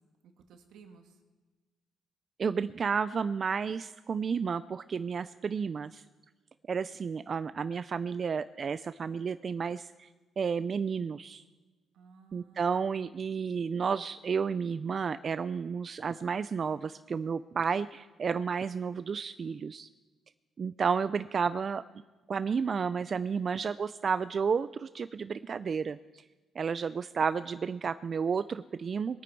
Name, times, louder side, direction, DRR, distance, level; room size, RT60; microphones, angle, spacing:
voice 1, 0.2-1.2 11.9-13.0, right 5 dB, 80° right, 5 dB, 1.6 m, -56 dB
voice 2, 2.4-6.0 6.7-10.1 10.4-11.4 12.3-19.9 20.6-21.8 22.3-26.2 26.6-29.2, right 6 dB, 45° right, 13 dB, 0.3 m, -32 dB
21.5 x 9.2 x 4.6 m, 1.3 s
cardioid pair, 90°, 0 cm